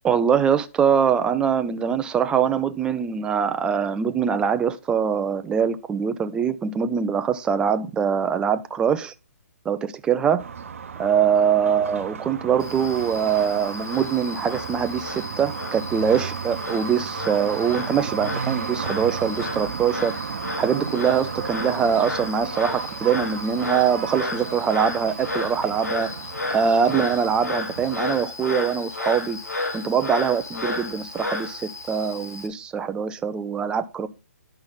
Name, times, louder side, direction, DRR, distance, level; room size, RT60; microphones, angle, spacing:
voice 1, 0.0-9.1 9.7-10.4 11.0-20.1 20.6-26.1 26.5-29.4 29.7-34.1, right 7 dB, 10° right, 0.4 m, -23 dB
sound 1, 10.4-28.2, right 6 dB, 55° right, 0.8 m, -34 dB
Frog, 12.6-32.5, left 2 dB, 75° left, 1.9 m, -33 dB
10.5 x 5.7 x 3.7 m
figure-of-eight pair, 135°, 9 cm